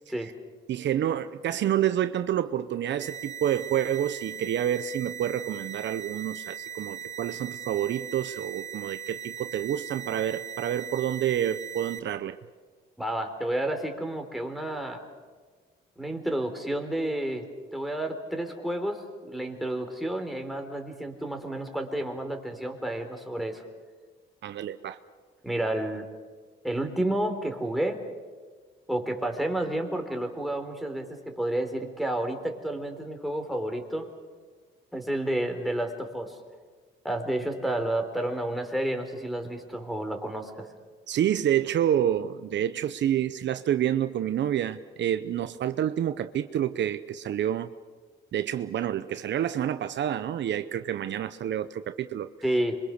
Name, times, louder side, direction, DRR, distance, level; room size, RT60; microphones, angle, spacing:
voice 1, 0.7-12.4 24.4-25.0 41.1-47.7 48.3-52.3, right 10 dB, 65° right, 11 dB, 0.8 m, -28 dB
sound 1, 3.0-12.0, right 9 dB, 35° right, 1.2 m, -39 dB
voice 2, 13.0-15.0 16.0-17.5 17.7-23.6 25.4-26.1 26.6-28.0 28.9-34.1 34.9-36.4 37.0-40.7 52.4-52.8, right 1 dB, ahead, 3 dB, 3.8 m, -30 dB
27.0 x 23.5 x 6.6 m, 1.5 s
cardioid pair, 90°, 20 cm